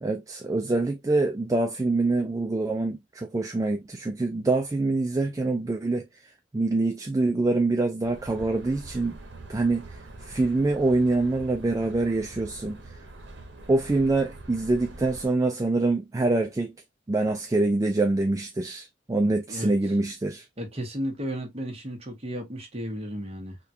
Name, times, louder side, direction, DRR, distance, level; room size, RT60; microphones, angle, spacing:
voice 1, 0.0-6.0 6.5-9.2 9.5-13.0 13.7-16.7 17.1-20.5, right 2 dB, 20° right, 0.3 m, -25 dB
sound 1, 8.0-15.3, right 2 dB, 80° right, 0.9 m, -44 dB
voice 2, 20.6-23.6, equal, 35° right, 1.1 m, -34 dB
3.6 x 2.3 x 2.7 m
head